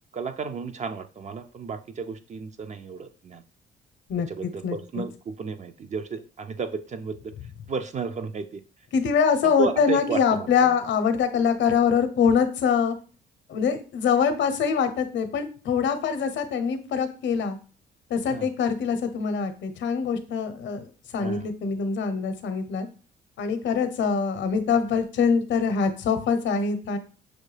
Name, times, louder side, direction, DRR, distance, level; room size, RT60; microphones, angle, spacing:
voice 1, 0.1-3.4 4.3-7.1 7.7-8.6 9.4-10.5 18.3-18.5 21.2-21.5, right 5 dB, 35° right, 9 dB, 0.4 m, -33 dB
voice 2, 4.1-5.0 8.9-13.0 13.5-17.6 18.1-20.9 21.1-22.9 23.4-27.0, left 6 dB, 65° left, 10 dB, 0.7 m, -24 dB
6.2 x 2.2 x 3.2 m, 0.37 s
cardioid pair, 90°, 20 cm